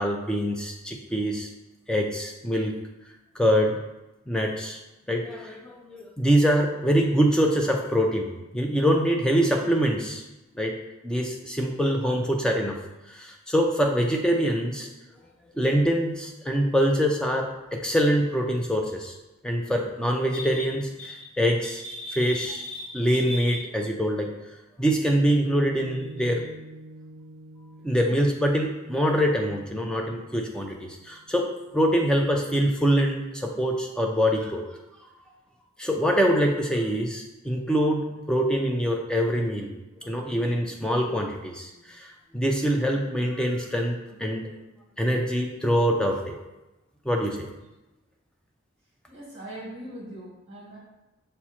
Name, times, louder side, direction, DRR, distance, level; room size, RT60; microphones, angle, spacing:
voice 1, 0.0-1.5 1.9-2.8 3.4-3.8 4.3-4.8 5.1-10.2 10.6-10.8 11.0-12.8 13.1-14.9 15.6-19.1 19.4-24.3 24.8-26.4 27.8-31.5 31.7-34.6 35.8-39.7 40.0-44.5 45.0-46.4 47.1-47.5, equal, 5° left, 1 dB, 0.4 m, -24 dB
Piano, 25.2-31.9, right 1 dB, 80° right, 0.3 m, -46 dB
voice 2, 49.1-50.8, right 1 dB, 30° right, -5 dB, 1.5 m, -40 dB
5.8 x 2.1 x 4.2 m, 1.0 s
head